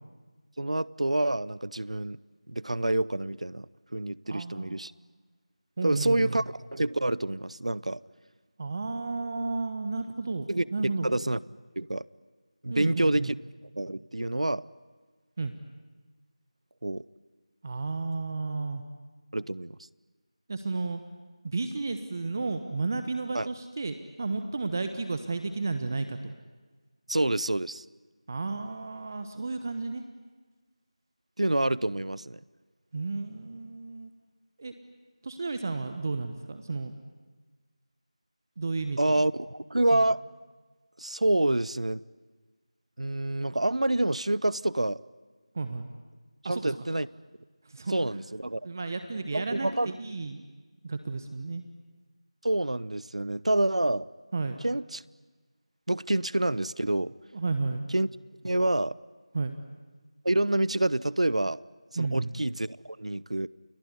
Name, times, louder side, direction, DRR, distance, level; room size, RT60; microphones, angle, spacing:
voice 1, 0.6-2.2 2.5-4.9 5.8-6.4 6.7-8.0 10.5-11.4 11.8-12.0 12.6-13.3 13.8-14.6 16.8-17.0 19.3-19.8 23.3-23.5 27.1-27.8 31.4-32.4 39.0-40.2 41.0-42.0 43.0-45.0 46.5-47.1 47.9-48.7 49.3-49.9 52.4-54.1 54.6-55.0 55.9-57.1 57.9-58.1 58.4-58.9 60.2-61.6 62.0-63.5, right 1 dB, 80° right, 21 dB, 0.8 m, -27 dB
voice 2, 4.2-4.8 5.8-6.4 8.6-11.1 12.7-13.4 15.4-15.5 17.6-18.8 20.5-21.0 21.4-26.3 28.3-30.0 32.9-34.1 34.6-34.7 35.2-36.9 38.6-39.1 39.9-40.0 45.5-45.9 46.4-46.8 47.6-48.2 48.6-50.4 50.8-51.6 54.3-54.6 57.3-57.8 59.3-59.5 61.9-62.3, right 3 dB, 30° right, 9 dB, 1.2 m, -32 dB
29.5 x 19.5 x 9.8 m, 1.3 s
figure-of-eight pair, 170°, 3 cm